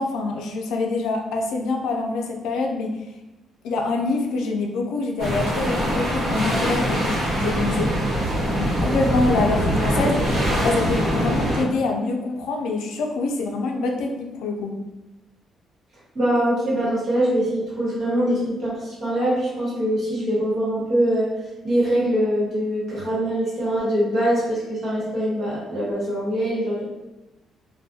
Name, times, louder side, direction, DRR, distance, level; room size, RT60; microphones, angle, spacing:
voice 1, 0.0-3.0 3.6-8.0 8.5-14.8, left 3 dB, 90° left, 2 dB, 0.4 m, -25 dB
sound 1, 5.2-11.6, equal, 60° right, 1.0 m, -23 dB
voice 2, 16.1-21.3 21.6-26.8, right 1 dB, 40° right, -7 dB, 1.1 m, -23 dB
2.3 x 2.1 x 2.6 m, 1.0 s
cardioid pair, 145°, 0 cm